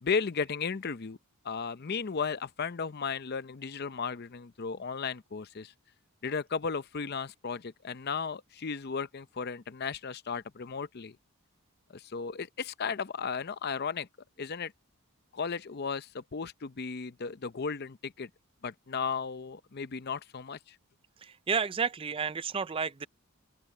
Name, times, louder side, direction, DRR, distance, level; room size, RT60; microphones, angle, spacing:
voice 1, 0.0-1.2 1.4-5.7 6.2-11.2 11.9-14.1 14.4-14.7 15.3-18.3 18.6-20.8, left 5 dB, 45° left, 0.6 m, -35 dB
voice 2, 21.2-23.1, right 5 dB, 25° right, 0.4 m, -31 dB
open air
head